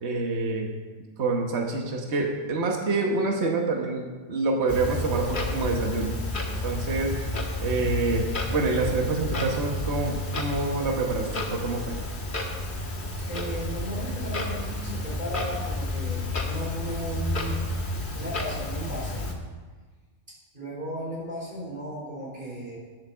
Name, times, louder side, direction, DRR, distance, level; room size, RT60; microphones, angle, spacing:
voice 1, 0.0-0.7 1.2-6.2 6.6-7.2 7.6-12.0, right 3 dB, 60° right, 2 dB, 1.6 m, -27 dB
Clock, 4.7-19.3, left 1 dB, 40° left, 1.6 m, -31 dB
voice 2, 13.2-17.6 18.1-19.3 20.3-22.8, right 1 dB, 40° right, -6 dB, 5.0 m, -35 dB
10.0 x 8.3 x 7.3 m, 1.4 s
omnidirectional pair, 1.3 m